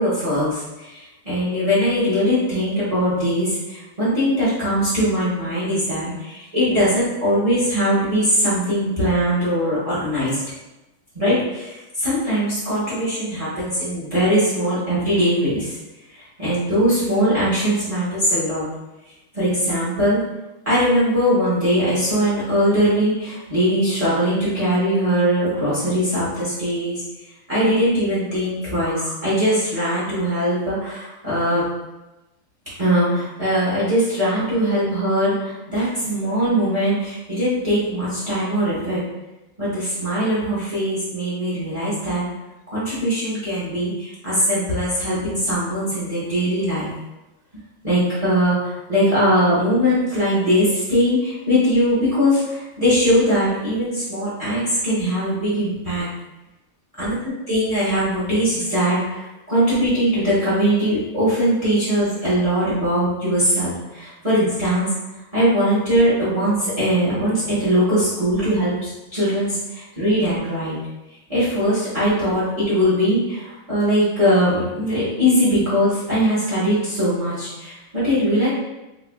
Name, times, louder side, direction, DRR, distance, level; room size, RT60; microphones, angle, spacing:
voice 1, 0.0-10.4 11.1-15.8 16.1-18.7 19.3-20.2 20.6-27.0 27.5-31.7 32.8-39.0 39.6-42.2 42.7-46.9 47.8-56.1 57.0-57.1 57.5-64.9 65.3-70.8 71.3-78.5, equal, 50° right, -11 dB, 0.4 m, -21 dB
5.6 x 2.0 x 2.3 m, 1.0 s
omnidirectional pair, 2.4 m